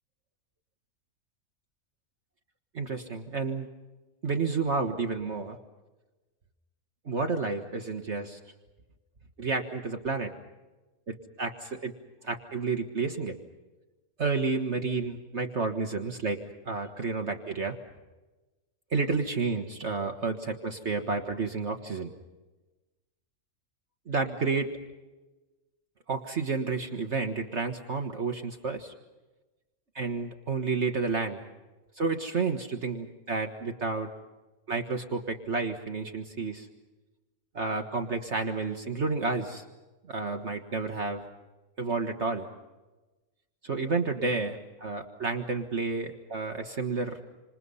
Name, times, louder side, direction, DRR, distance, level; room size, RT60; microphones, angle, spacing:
voice 1, 2.7-3.7 4.2-5.6 7.0-8.4 9.4-10.3 11.1-11.9 12.2-13.4 14.2-16.4 16.6-17.8 18.9-22.1 24.1-24.7 26.1-28.9 29.9-31.4 31.9-34.1 34.7-36.7 37.5-39.6 40.1-41.2 41.8-42.5 43.6-47.2, right 4 dB, 50° right, 4 dB, 1.8 m, -30 dB
28.0 x 27.5 x 5.6 m, 1.1 s
omnidirectional pair, 1.5 m